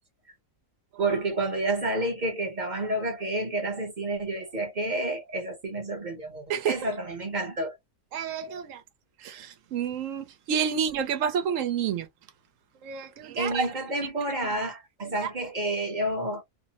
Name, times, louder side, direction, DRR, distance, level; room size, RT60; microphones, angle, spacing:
voice 1, 1.0-7.8 8.3-8.6 13.4-16.4, right 2 dB, 40° right, 0.8 m, -30 dB
voice 2, 6.5-6.9 8.1-8.8 9.2-12.1 12.8-13.7 15.0-15.3, right 7 dB, 65° right, 0.9 m, -29 dB
2.6 x 2.0 x 2.8 m
omnidirectional pair, 1.6 m